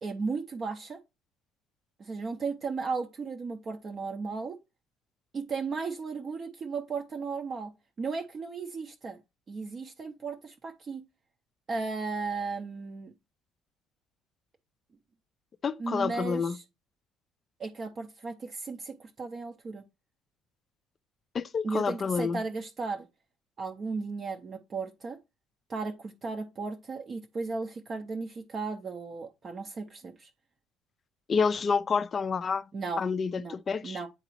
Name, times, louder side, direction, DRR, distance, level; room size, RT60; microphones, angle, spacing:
voice 1, 0.0-1.0 2.0-4.6 5.3-7.7 8.0-9.2 9.5-11.0 11.7-13.1 15.8-16.6 17.6-19.8 21.6-23.1 23.6-25.2 25.7-30.3 32.7-33.0 33.4-33.6 33.8-34.1, right 4 dB, 30° right, 0.5 m, -35 dB
voice 2, 15.6-16.6 21.3-22.4 31.3-32.7 33.0-34.0, left 5 dB, 25° left, 0.3 m, -28 dB
8.9 x 3.9 x 3.0 m
cardioid pair, 155°, 0 cm